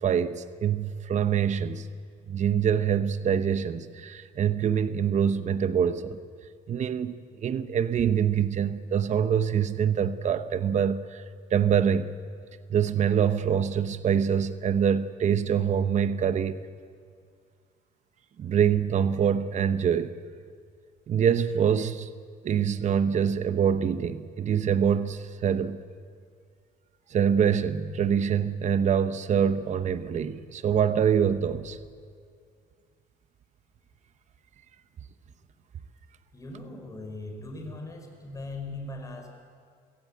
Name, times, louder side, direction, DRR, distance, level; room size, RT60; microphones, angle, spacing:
voice 1, 0.0-1.9 2.3-6.2 6.7-11.2 11.5-12.1 12.7-16.6 18.4-20.1 21.1-22.1 22.4-25.8 27.1-31.8, right 8 dB, 45° right, 0.9 m, -25 dB
voice 2, 36.3-39.3, left 2 dB, 20° left, 5.0 m, -39 dB
23.5 x 16.0 x 8.5 m
cardioid pair, 110°, 17 cm